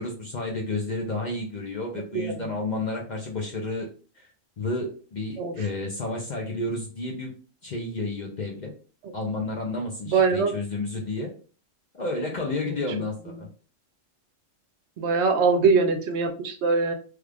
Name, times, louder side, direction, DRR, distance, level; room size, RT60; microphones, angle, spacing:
voice 1, 0.0-3.9 4.2-4.3 4.6-7.3 7.6-8.7 9.1-11.3 11.9-13.5, left 2 dB, 50° left, 0 dB, 0.6 m, -31 dB
voice 2, 2.1-2.4 5.4-5.5 9.0-9.1 10.1-10.5 12.7-12.8 15.0-16.9, right 4 dB, 65° right, 7 dB, 0.8 m, -22 dB
3.2 x 2.4 x 3.3 m, 0.38 s
omnidirectional pair, 1.3 m